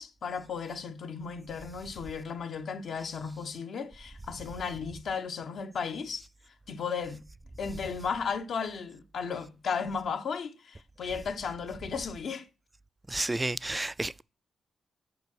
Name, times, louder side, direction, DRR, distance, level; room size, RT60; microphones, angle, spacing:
voice 1, 0.0-6.2 6.7-7.2 7.6-12.5, left 6 dB, 65° left, 1.0 m, -35 dB
voice 2, 13.1-14.2, right 2 dB, 15° right, 0.3 m, -31 dB
6.9 x 5.3 x 6.1 m
cardioid pair, 115°, 0 cm